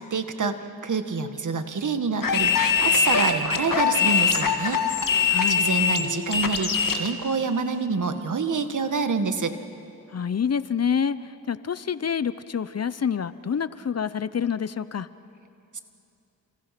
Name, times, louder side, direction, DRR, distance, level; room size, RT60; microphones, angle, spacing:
voice 1, 0.0-4.9 5.2-9.6 15.7-15.8, right 4 dB, 55° right, 8 dB, 1.8 m, -27 dB
sound 1, 2.2-7.1, left 6 dB, 65° left, 2.0 m, -22 dB
voice 2, 5.3-5.6 10.1-15.1, left 7 dB, 45° left, 15 dB, 0.8 m, -27 dB
30.0 x 27.0 x 6.0 m, 2.7 s
cardioid pair, 55°, 35 cm